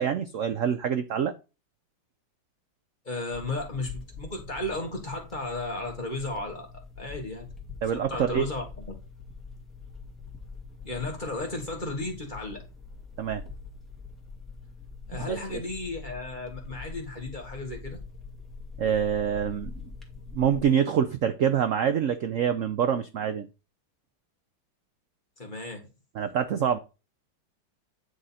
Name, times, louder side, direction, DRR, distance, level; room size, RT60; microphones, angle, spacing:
voice 1, 0.0-1.3 7.8-8.5 13.2-13.4 15.3-15.4 18.8-19.7 20.3-23.5 26.1-26.8, right 8 dB, 75° right, 0.7 m, -26 dB
voice 2, 3.1-6.7 7.0-7.5 7.9-8.9 10.8-12.6 15.1-18.0 25.4-25.9, left 2 dB, 25° left, 1.7 m, -34 dB
sound 1, 3.3-20.6, left 4 dB, ahead, 1.6 m, -44 dB
9.8 x 3.7 x 4.2 m
omnidirectional pair, 2.1 m